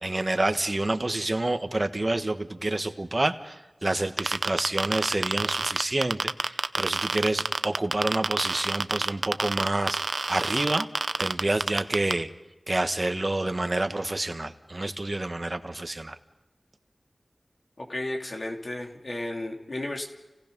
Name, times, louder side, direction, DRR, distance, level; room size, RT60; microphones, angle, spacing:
voice 1, 0.0-10.9 11.2-12.3 12.7-16.1, right 2 dB, 45° right, 8 dB, 1.4 m, -28 dB
sound 1, 4.2-12.1, right 3 dB, 80° right, 0.6 m, -27 dB
voice 2, 17.8-20.1, left 1 dB, 65° left, 1 dB, 2.9 m, -33 dB
30.0 x 17.5 x 5.4 m, 1.1 s
wide cardioid pair, 50°, 0 cm